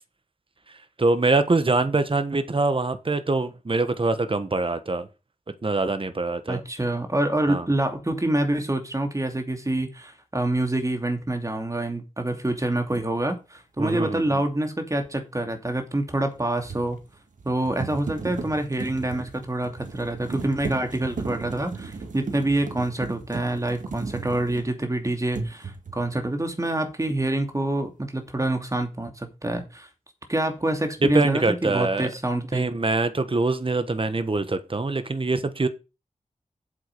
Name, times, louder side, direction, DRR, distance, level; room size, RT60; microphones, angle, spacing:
voice 1, 1.0-5.1 5.6-6.6 7.5-7.6 13.8-14.4 31.0-32.1 32.5-35.7, right 3 dB, 45° right, 1.4 m, -24 dB
voice 2, 6.5-17.0 17.4-29.9 30.3-32.7, right 1 dB, 25° right, 2.8 m, -26 dB
sound 1, 12.9-13.1 16.2-24.9 25.3-26.1, right 4 dB, 90° right, 1.9 m, -36 dB
8.4 x 7.5 x 5.5 m
wide cardioid pair, 60°, 13 cm